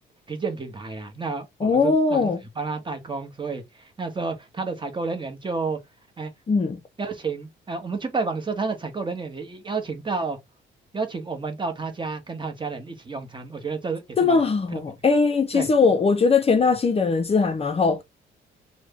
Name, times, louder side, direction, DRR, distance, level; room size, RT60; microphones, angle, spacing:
voice 1, 0.3-2.3 2.6-5.8 6.2-6.3 7.0-10.4 10.9-14.4 14.7-14.8 15.5-15.7, right 4 dB, 25° right, 0.8 m, -30 dB
voice 2, 1.6-2.4 6.5-6.8 14.2-18.0, left 4 dB, 30° left, 0.5 m, -20 dB
3.1 x 2.1 x 3.5 m
cardioid pair, 90°, 20 cm